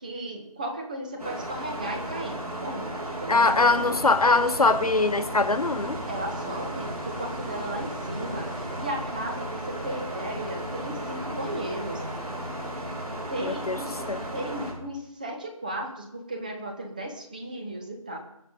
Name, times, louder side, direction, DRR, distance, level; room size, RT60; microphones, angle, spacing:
voice 1, 0.0-4.0 6.1-12.0 13.3-14.0 14.3-18.2, right 1 dB, 15° right, 3 dB, 1.1 m, -35 dB
sound 1, 1.2-14.7, right 1 dB, 85° right, 5.8 m, -35 dB
voice 2, 3.3-6.0 13.4-13.8 14.1-14.2, left 3 dB, 85° left, 10 dB, 1.4 m, -22 dB
sound 2, 3.4-8.9, equal, 65° right, 6.1 m, -43 dB
sound 3, 4.0-13.0, equal, 15° left, 0.5 m, -44 dB
22.0 x 7.4 x 5.2 m, 0.79 s
figure-of-eight pair, 175°, 19 cm